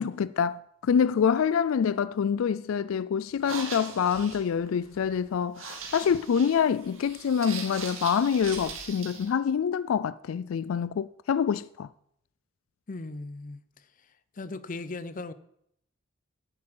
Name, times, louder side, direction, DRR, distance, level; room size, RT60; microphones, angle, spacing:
voice 1, 0.0-11.9, left 7 dB, 85° left, 0.4 m, -26 dB
sound 1, 3.3-9.3, right 5 dB, 85° right, 2.3 m, -41 dB
voice 2, 12.9-13.6 14.4-15.3, left 3 dB, 40° left, 0.6 m, -37 dB
9.2 x 7.3 x 7.8 m
head